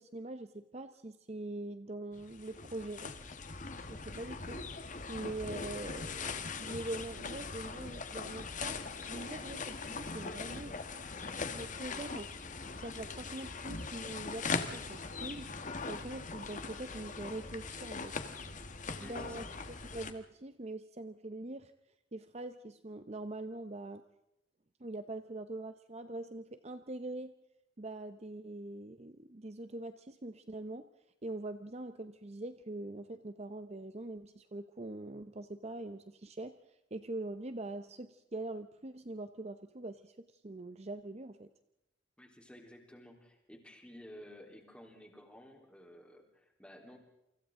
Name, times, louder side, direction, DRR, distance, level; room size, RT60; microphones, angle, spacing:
voice 1, 0.0-3.1 3.9-4.7 5.1-8.8 9.1-11.0 11.5-12.3 12.8-15.5 15.9-18.1 19.0-19.5 19.9-21.7 22.1-24.0 24.8-27.3 27.8-30.9 31.2-36.6 36.9-41.5, right 2 dB, 35° right, 10 dB, 0.8 m, -43 dB
sound 1, 2.1-20.1, left 4 dB, 45° left, 1.5 m, -41 dB
voice 2, 10.1-10.8 19.0-19.5 42.2-47.0, equal, 5° left, 1 dB, 3.7 m, -54 dB
29.0 x 24.5 x 3.8 m, 0.85 s
head